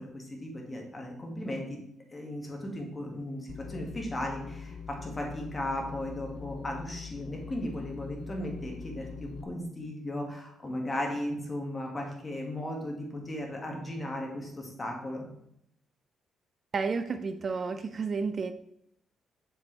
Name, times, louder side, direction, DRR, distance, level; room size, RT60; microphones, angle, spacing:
voice 1, 0.0-1.8 2.1-4.8 5.0-15.2, left 1 dB, 20° left, 0 dB, 1.7 m, -36 dB
sound 1, 3.5-9.4, left 5 dB, 65° left, 0.4 m, -43 dB
voice 2, 16.7-18.5, right 4 dB, 45° right, 9 dB, 0.4 m, -31 dB
6.9 x 4.5 x 3.2 m, 0.74 s
cardioid pair, 90°, 0 cm